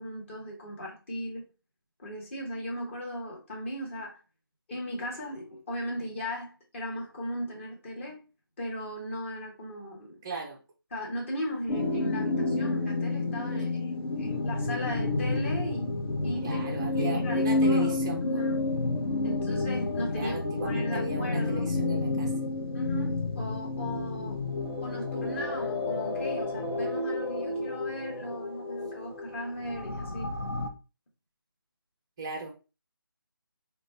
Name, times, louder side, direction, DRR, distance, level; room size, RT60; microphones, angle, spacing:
voice 1, 0.0-1.5 2.0-4.2 4.7-8.2 8.6-10.2 10.9-15.9 16.2-17.9 18.2-18.7 19.2-20.4 20.6-21.7 22.7-24.4 24.8-30.3, equal, 30° left, 1.1 m, -37 dB
voice 2, 10.2-10.6 16.4-18.4 20.1-22.3 32.2-32.6, right 3 dB, 10° right, 0.4 m, -36 dB
sound 1, 11.7-30.7, left 2 dB, 75° left, 0.9 m, -30 dB
3.8 x 2.3 x 3.3 m
figure-of-eight pair, 165°, 13 cm